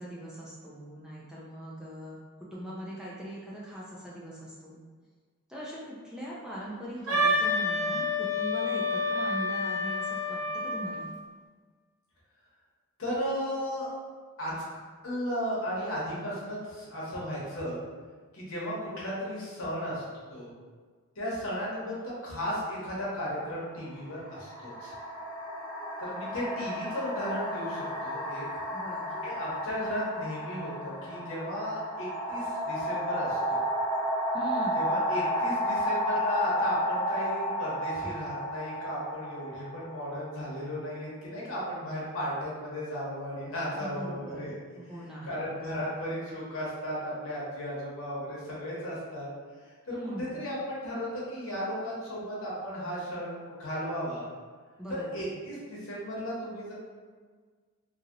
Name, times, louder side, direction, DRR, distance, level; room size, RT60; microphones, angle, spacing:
voice 1, 0.0-4.8 5.5-11.1 28.7-29.1 34.3-34.8 43.7-44.5 44.8-45.6 49.9-50.3 54.8-55.2, equal, 5° right, -7 dB, 0.3 m, -41 dB
Wind instrument woodwind instrument, 7.1-10.9, left 2 dB, 70° right, 0.8 m, -28 dB
voice 2, 13.0-13.9 14.4-14.5 15.0-17.8 18.3-20.0 20.3-20.5 21.2-24.9 26.0-28.4 29.1-33.6 34.7-44.6 45.2-49.3 49.9-54.3 54.9-56.7, equal, 65° left, -6 dB, 1.0 m, -35 dB
sound 1, 23.1-23.2 24.1-40.7, equal, 40° left, 0.7 m, -32 dB
2.8 x 2.8 x 2.5 m, 1.5 s
head